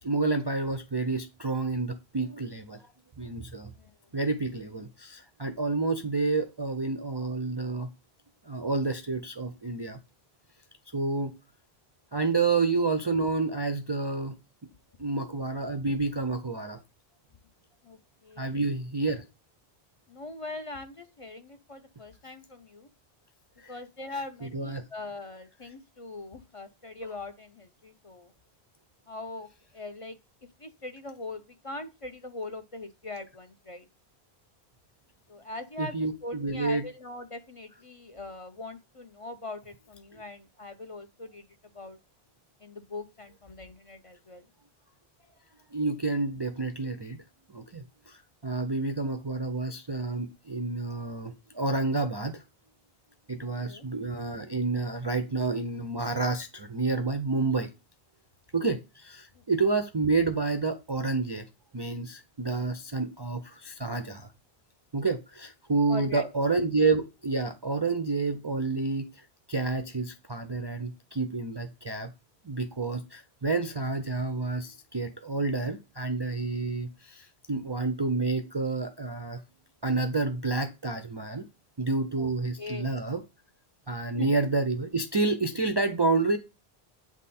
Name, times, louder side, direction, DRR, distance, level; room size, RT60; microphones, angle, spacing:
voice 1, 0.0-2.8 3.2-3.7 4.1-7.9 8.5-10.0 10.9-11.3 12.1-14.4 15.0-16.8 18.4-19.2 23.6-23.7 24.4-24.8 35.8-36.9 45.7-47.2 47.5-52.4 53.3-57.7 58.5-61.5 61.7-64.3 64.9-72.1 72.4-79.4 79.8-81.5 81.8-83.2 83.9-86.4, right 3 dB, 35° right, 0.4 m, -29 dB
voice 2, 17.8-18.5 20.1-22.9 23.7-28.3 29.1-30.2 30.6-33.9 35.3-36.0 36.2-41.4 41.7-42.0 42.6-44.5 53.6-53.8 59.3-59.4 65.9-66.3 82.2-82.3 82.6-83.0 84.2-84.3, left 2 dB, 40° left, 0.5 m, -41 dB
8.4 x 3.6 x 4.2 m
omnidirectional pair, 1.1 m